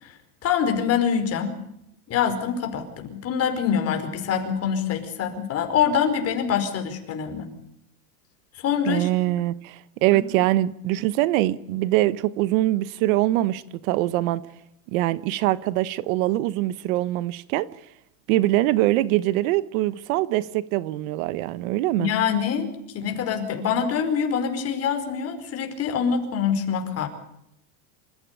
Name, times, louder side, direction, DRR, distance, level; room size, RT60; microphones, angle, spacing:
voice 1, 0.4-1.6 2.1-7.5 8.5-9.1 10.1-10.2 22.0-27.1, left 7 dB, 30° left, 5.0 m, -25 dB
voice 2, 8.9-14.4 14.9-17.7 18.3-22.1, right 16 dB, 60° right, 1.2 m, -23 dB
28.0 x 15.0 x 8.5 m
supercardioid pair, 155°, 47 cm